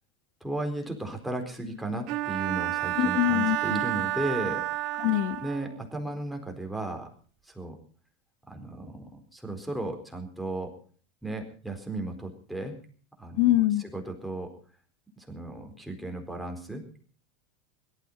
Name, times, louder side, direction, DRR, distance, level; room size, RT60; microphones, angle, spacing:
voice 1, 0.4-4.6 5.4-7.1 7.5-7.7 8.5-10.8 11.2-12.7 13.2-13.4 13.9-14.5 15.2-16.8, right 2 dB, ahead, 4.3 m, -35 dB
Bowed string instrument, 2.1-5.8, right 16 dB, 55° right, 1.5 m, -30 dB
voice 2, 3.0-3.8 5.0-5.4 13.4-13.8, left 15 dB, 65° left, 0.8 m, -24 dB
17.5 x 13.0 x 5.7 m
hypercardioid pair, 105°, 0 cm